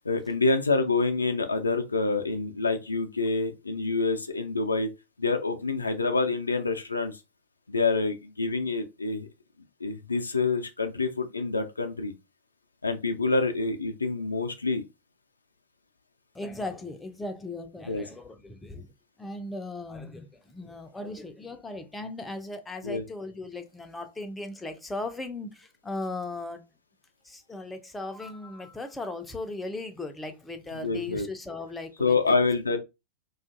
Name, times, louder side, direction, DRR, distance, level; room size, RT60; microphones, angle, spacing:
voice 1, 0.0-4.9 5.2-7.2 7.7-9.3 9.8-12.1 12.8-14.8 17.9-18.0 22.8-23.0 30.7-31.3 32.0-32.8, left 3 dB, 80° left, 0.3 m, -27 dB
voice 2, 16.3-18.9 19.2-26.6 27.2-32.4, left 2 dB, 10° left, 0.4 m, -37 dB
2.4 x 2.3 x 2.4 m
figure-of-eight pair, 90°, 0 cm